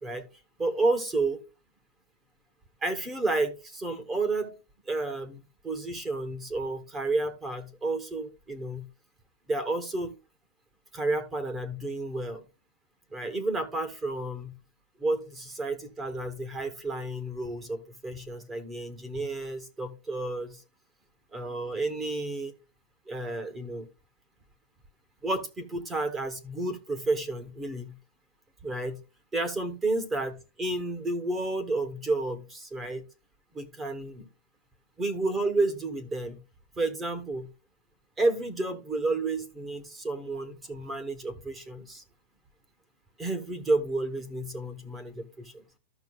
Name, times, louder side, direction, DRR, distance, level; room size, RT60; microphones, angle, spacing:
voice 1, 0.6-1.4 2.8-4.5 4.9-8.9 9.5-10.1 10.9-12.4 13.1-14.5 15.0-20.6 21.3-22.5 23.1-23.9 25.2-28.0 28.6-29.0 29.3-33.0 33.5-34.3 35.0-36.4 36.8-37.5 38.2-42.0 43.2-45.6, right 2 dB, 15° right, 7 dB, 1.2 m, -31 dB
14.0 x 5.9 x 2.3 m, 0.30 s
supercardioid pair, 160°, 0 cm